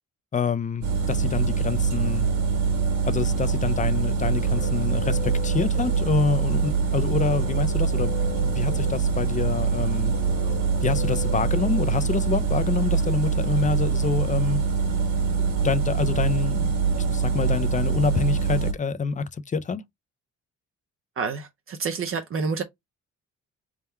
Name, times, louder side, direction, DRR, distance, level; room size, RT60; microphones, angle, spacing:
voice 1, 0.3-2.3 3.1-10.2 10.8-14.6 15.6-16.7 17.1-19.8, left 5 dB, 25° left, 0.5 m, -27 dB
sound 1, 0.8-18.7, right 5 dB, 65° right, 1.5 m, -24 dB
sound 2, 3.9-12.6, left 7 dB, 70° left, 1.3 m, -41 dB
voice 2, 21.2-22.6, right 5 dB, 45° right, 0.6 m, -28 dB
3.7 x 2.1 x 4.3 m
cardioid pair, 90°, 30 cm